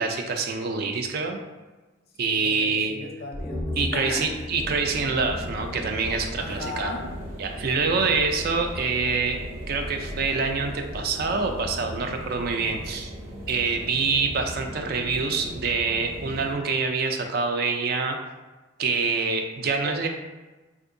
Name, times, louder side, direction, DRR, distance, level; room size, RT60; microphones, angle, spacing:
voice 1, 0.0-1.4 2.2-2.9 3.8-6.9 7.4-9.4 9.7-13.1 13.5-18.2 18.8-20.1, right 4 dB, 50° right, 4 dB, 0.4 m, -26 dB
voice 2, 2.2-4.5 6.4-7.1 19.8-20.1, left 2 dB, 50° left, 2 dB, 0.5 m, -36 dB
sound 1, 3.3-6.7 7.0-7.1, left 1 dB, ahead, 0.5 m, -36 dB
sound 2, 4.5-16.5, equal, 75° right, 0.7 m, -37 dB
3.6 x 2.7 x 2.5 m, 1.2 s
head